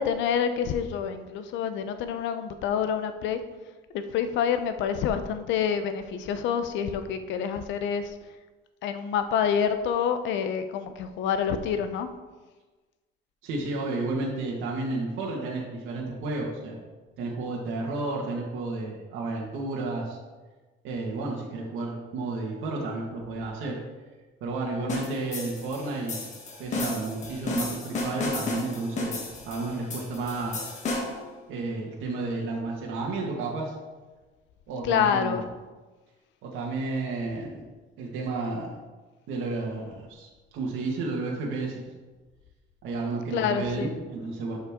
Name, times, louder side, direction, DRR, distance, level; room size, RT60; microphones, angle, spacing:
voice 1, 0.0-3.4 3.9-8.1 8.8-12.1 34.8-35.4 43.3-43.9, left 7 dB, 65° left, 9 dB, 0.8 m, -27 dB
voice 2, 13.4-16.8 17.2-20.2 20.8-23.8 24.4-26.2 26.6-30.6 31.5-33.7 34.7-35.4 36.4-37.5 38.0-38.7 39.3-41.8 42.8-44.6, right 3 dB, 80° right, -3 dB, 1.8 m, -32 dB
sound 1, 24.9-31.3, left 2 dB, 35° left, 1.5 m, -33 dB
11.5 x 5.6 x 3.7 m, 1.3 s
cardioid pair, 180°, 20 cm